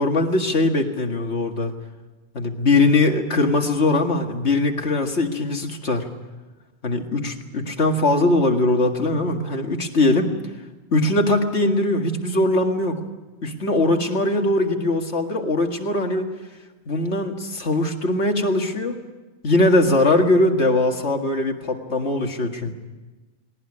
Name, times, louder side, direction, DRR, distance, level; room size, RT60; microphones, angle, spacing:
voice 1, 0.0-1.7 2.3-6.1 6.8-10.3 10.9-13.0 13.4-16.3 16.9-19.0 19.4-22.7, left 2 dB, 80° left, 4 dB, 2.2 m, -21 dB
19.5 x 18.5 x 9.9 m, 1.2 s
omnidirectional pair, 1.1 m